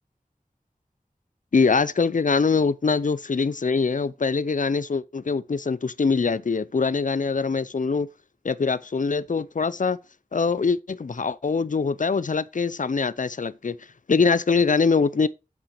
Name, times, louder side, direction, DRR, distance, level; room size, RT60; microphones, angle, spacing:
voice 1, 1.5-8.1 8.4-10.0 10.3-13.8 14.1-15.3, left 4 dB, 60° left, 0.5 m, -23 dB
8.0 x 5.8 x 4.9 m
wide cardioid pair, 45°, 15 cm